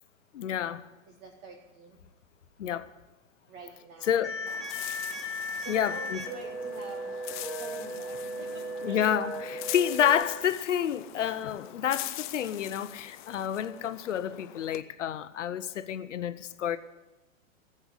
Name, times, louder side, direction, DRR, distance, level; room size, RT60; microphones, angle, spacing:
voice 1, 0.3-0.8 2.6-2.9 4.1-4.3 5.7-6.2 8.8-16.8, left 9 dB, 65° left, 1.0 m, -29 dB
voice 2, 1.1-2.0 3.5-4.3 5.6-7.1 7.6-9.0, right 3 dB, 35° right, 1.9 m, -45 dB
sound 1, 4.2-10.2, equal, ahead, 1.7 m, -36 dB
sound 2, 4.5-14.8, left 15 dB, 35° left, 0.6 m, -43 dB
15.0 x 8.1 x 9.7 m
figure-of-eight pair, 110°, 41 cm